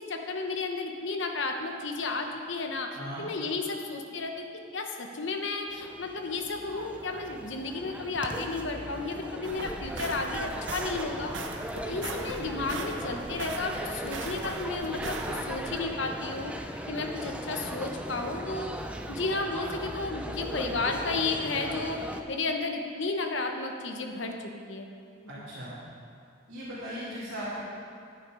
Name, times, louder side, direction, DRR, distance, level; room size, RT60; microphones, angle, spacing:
voice 1, 0.0-4.5 4.7-11.3 11.8-16.5 16.9-18.7 19.1-22.0 22.3-24.9, left 3 dB, 65° left, 3 dB, 1.0 m, -33 dB
sound 1, 5.7-22.2, right 1 dB, 5° right, 0.4 m, -38 dB
sound 2, 9.4-15.8, right 3 dB, 70° right, 0.9 m, -40 dB
voice 2, 25.3-25.8 26.5-27.6, equal, 90° right, -12 dB, 2.7 m, -38 dB
11.0 x 9.2 x 5.0 m, 2.4 s
head